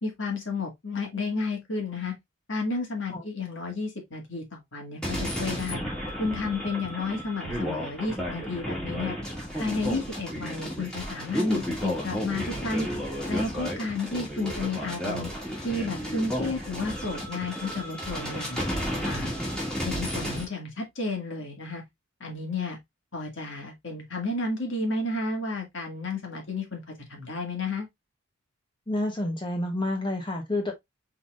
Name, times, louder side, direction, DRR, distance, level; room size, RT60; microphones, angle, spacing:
voice 1, 0.0-2.1 2.5-5.8 6.2-9.2 9.6-12.9 13.3-15.3 15.6-18.6 19.0-19.4 19.8-21.8 22.2-22.8 23.1-26.8 27.1-27.9, left 3 dB, 60° left, 2.1 m, -32 dB
sound 1, 5.0-20.5, equal, 5° left, 2.0 m, -32 dB
voice 2, 28.9-30.7, left 1 dB, 20° left, 1.0 m, -29 dB
5.7 x 3.8 x 2.4 m
head